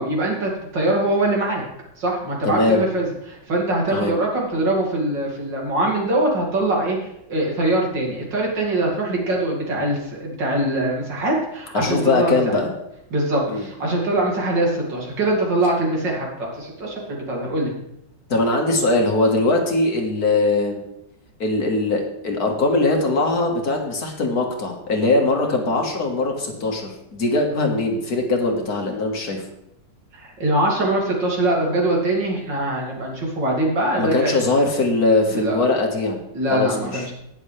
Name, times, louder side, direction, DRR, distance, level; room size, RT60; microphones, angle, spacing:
voice 1, 0.0-1.6 2.0-12.5 13.1-17.7 30.1-34.4 35.3-35.6 36.3-37.1, right 1 dB, 75° right, -2 dB, 3.2 m, -23 dB
voice 2, 2.4-2.8 3.9-4.1 11.7-12.7 13.5-13.7 18.3-20.8 21.4-29.4 34.0-36.2 36.5-37.1, left 2 dB, 55° left, 2 dB, 2.0 m, -21 dB
19.0 x 6.6 x 3.3 m, 0.81 s
omnidirectional pair, 2.0 m